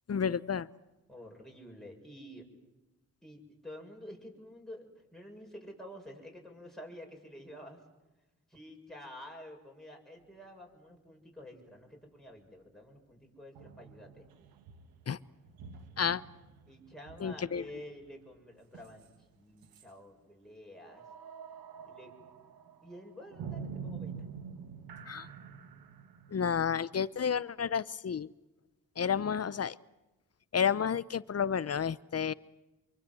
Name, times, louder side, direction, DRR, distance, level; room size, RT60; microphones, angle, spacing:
voice 1, 0.1-0.7 15.1-15.2 16.0-16.2 17.2-17.7 25.1-25.3 26.3-28.3 29.0-29.8 30.5-32.3, left 7 dB, 45° left, 19 dB, 0.9 m, -31 dB
voice 2, 1.1-2.4 3.2-7.8 8.5-14.3 16.7-21.1 21.9-22.1 22.8-24.3, left 1 dB, ahead, 0 dB, 6.9 m, -49 dB
sound 1, 10.2-10.3 13.5-19.4 19.6-19.9 20.9-27.5, right 6 dB, 85° right, 1.5 m, -47 dB
26.0 x 23.5 x 7.9 m, 1.1 s
supercardioid pair, 40°, 35 cm